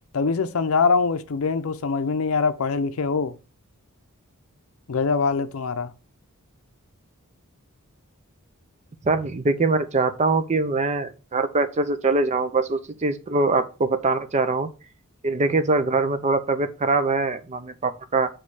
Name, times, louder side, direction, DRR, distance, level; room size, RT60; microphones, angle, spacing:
voice 1, 0.1-3.3 4.9-5.9, left 4 dB, 65° left, 0.5 m, -23 dB
voice 2, 9.0-14.7 15.2-18.3, right 3 dB, 30° right, 0.5 m, -23 dB
6.4 x 3.1 x 4.7 m
head